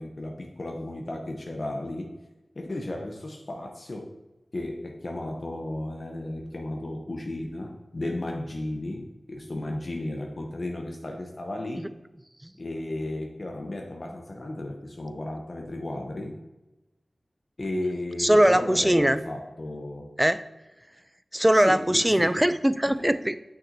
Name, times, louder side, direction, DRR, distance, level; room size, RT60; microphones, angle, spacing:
voice 1, 0.0-2.1 2.6-4.1 4.5-11.9 12.6-16.4 17.6-20.1 21.6-22.4 22.9-23.0, left 1 dB, 55° left, 2 dB, 0.7 m, -34 dB
voice 2, 18.2-19.2 20.2-20.4 21.3-23.4, right 1 dB, 10° right, 12 dB, 0.3 m, -21 dB
6.0 x 5.9 x 2.6 m, 1.0 s
wide cardioid pair, 55°, 0 cm